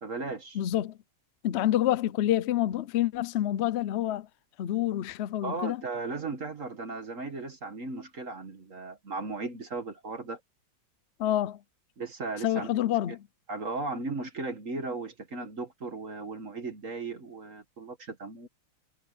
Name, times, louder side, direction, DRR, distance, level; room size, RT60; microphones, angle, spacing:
voice 1, 0.0-0.6 5.4-10.4 12.0-12.7 13.1-13.2 13.5-18.5, right 3 dB, 45° right, 1.8 m, -36 dB
voice 2, 0.5-1.0 1.4-4.3 4.6-5.8 11.2-11.6 12.4-13.3, left 13 dB, 80° left, 0.6 m, -27 dB
omnidirectional pair, 2.0 m